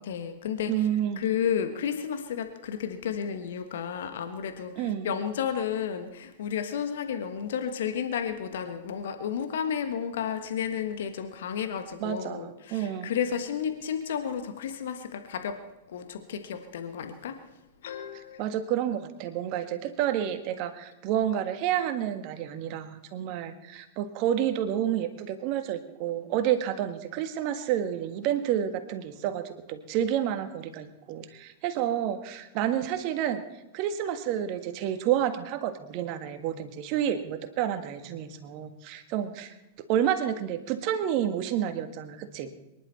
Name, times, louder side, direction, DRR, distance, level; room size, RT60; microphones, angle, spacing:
voice 1, 0.0-0.7 1.2-15.6 15.9-17.3 17.8-18.4, left 8 dB, 65° left, 7 dB, 1.4 m, -32 dB
voice 2, 0.7-1.2 4.7-5.1 12.0-13.1 18.4-33.4 33.7-39.5 39.9-42.5, right 10 dB, 45° right, 8 dB, 1.6 m, -29 dB
24.0 x 11.0 x 4.2 m, 0.97 s
figure-of-eight pair, 95°, 0 cm